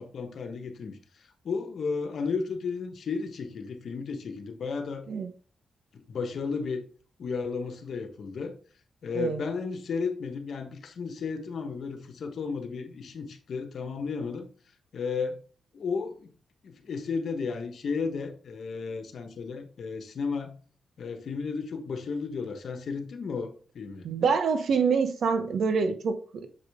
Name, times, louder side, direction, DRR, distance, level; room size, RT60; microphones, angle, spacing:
voice 1, 0.0-5.1 5.9-6.8 7.2-8.5 9.0-14.5 14.9-15.4 15.7-16.3 16.6-20.6 21.0-24.1, left 5 dB, 70° left, 7 dB, 1.2 m, -33 dB
voice 2, 24.0-26.5, right 5 dB, 70° right, 9 dB, 1.0 m, -26 dB
7.2 x 5.0 x 3.6 m, 0.40 s
cardioid pair, 75°, 0 cm